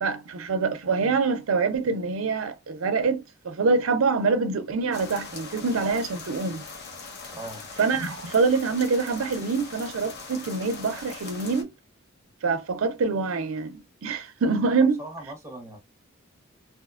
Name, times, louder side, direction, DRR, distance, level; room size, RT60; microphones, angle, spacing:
voice 1, 0.0-6.6 7.8-11.7 12.4-15.0, right 4 dB, 80° right, 0.5 m, -25 dB
sound 1, 4.9-11.6, left 4 dB, 55° left, 0.7 m, -41 dB
voice 2, 7.3-7.6 14.8-15.8, right 1 dB, 15° right, 0.7 m, -39 dB
2.8 x 2.1 x 2.3 m
head